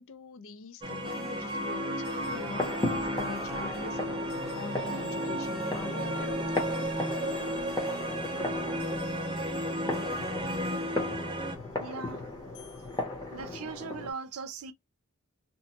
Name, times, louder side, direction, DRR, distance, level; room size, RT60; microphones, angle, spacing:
voice 1, 0.0-6.6 7.8-7.9, left 5 dB, 65° left, 0.4 m, -43 dB
sound 1, 0.8-11.6, right 1 dB, 25° right, 0.5 m, -34 dB
sound 2, 1.0-12.8, left 3 dB, 85° left, 1.7 m, -40 dB
sound 3, 2.2-14.1, left 2 dB, 20° left, 0.8 m, -37 dB
voice 2, 11.8-12.2 13.3-14.7, right 5 dB, 80° right, 0.5 m, -39 dB
2.9 x 2.1 x 2.8 m
head